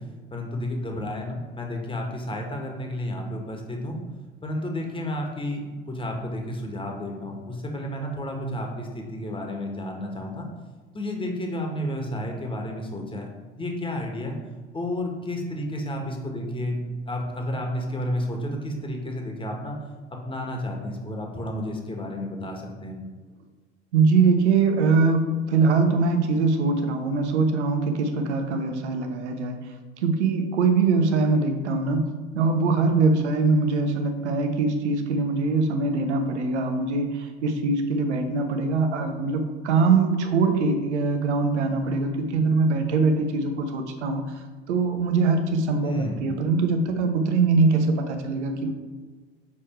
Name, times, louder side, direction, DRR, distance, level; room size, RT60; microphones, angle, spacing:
voice 1, 0.3-4.0 4.4-10.5 10.9-13.3 13.5-14.3 14.7-19.8 20.1-23.0 45.8-46.3, left 1 dB, 15° left, 1 dB, 1.6 m, -31 dB
voice 2, 23.9-29.6 30.0-32.0 32.3-44.2 44.7-48.7, right 4 dB, 70° right, 6 dB, 1.0 m, -22 dB
7.2 x 4.7 x 4.5 m, 1.4 s
figure-of-eight pair, 75°, 35 cm